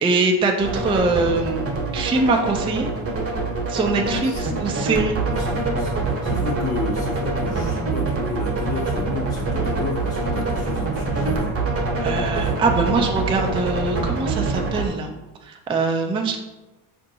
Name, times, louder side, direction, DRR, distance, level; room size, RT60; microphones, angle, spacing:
voice 1, 0.0-2.9 3.7-5.2 12.0-15.1 15.4-16.4, right 3 dB, 15° right, 3 dB, 0.3 m, -23 dB
sound 1, 0.6-14.9, right 3 dB, 30° right, 0.9 m, -25 dB
voice 2, 4.0-4.6 5.3-11.5 12.2-12.5 12.8-13.3, left 4 dB, 30° left, -3 dB, 0.7 m, -32 dB
4.4 x 2.6 x 2.7 m, 1.1 s
supercardioid pair, 60°, 48 cm